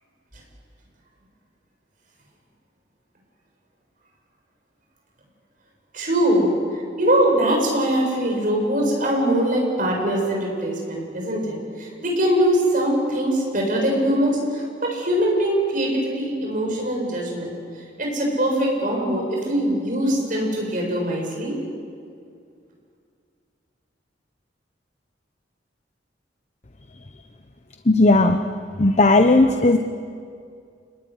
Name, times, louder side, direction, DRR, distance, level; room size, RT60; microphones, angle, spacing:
voice 1, 5.9-6.5 7.0-17.5 18.0-21.6, right 1 dB, 45° right, 0 dB, 7.5 m, -22 dB
voice 2, 27.9-28.4 28.8-29.8, left 2 dB, 40° left, 6 dB, 1.0 m, -15 dB
28.5 x 21.0 x 9.7 m, 2.3 s
head